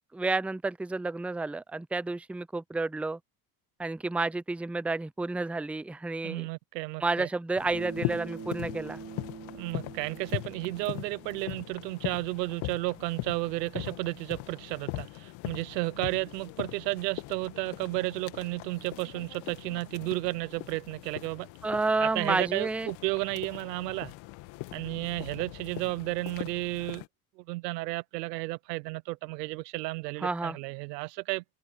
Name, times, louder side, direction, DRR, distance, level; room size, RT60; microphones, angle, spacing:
voice 1, 0.1-3.2 3.8-6.4 7.0-9.0 21.6-22.9 30.2-30.6, right 3 dB, 5° right, 0.6 m, -30 dB
voice 2, 6.2-7.3 9.5-21.5 22.0-24.1 24.7-27.0 27.4-31.4, right 22 dB, 85° right, 0.9 m, -33 dB
sound 1, 7.6-27.1, left 21 dB, 70° left, 2.0 m, -40 dB
Bass guitar, 7.7-12.1, right 6 dB, 30° right, 4.6 m, -44 dB
supercardioid pair, 80°, 48 cm